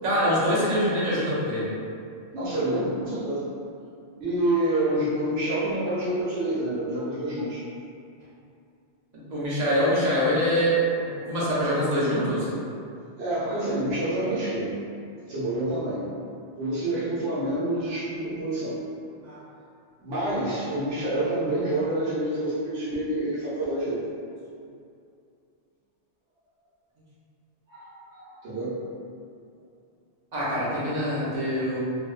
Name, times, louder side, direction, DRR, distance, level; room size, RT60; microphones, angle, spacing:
voice 1, 0.0-1.7 9.3-12.5 19.2-19.4 30.3-31.8, equal, 45° right, -9 dB, 0.6 m, -24 dB
voice 2, 2.3-3.4 4.2-7.6 13.2-14.8 15.3-16.0 16.6-18.8 20.0-24.0 27.7-28.8, right 1 dB, 75° right, -11 dB, 0.9 m, -27 dB
2.6 x 2.0 x 2.3 m, 2.4 s
omnidirectional pair, 1.2 m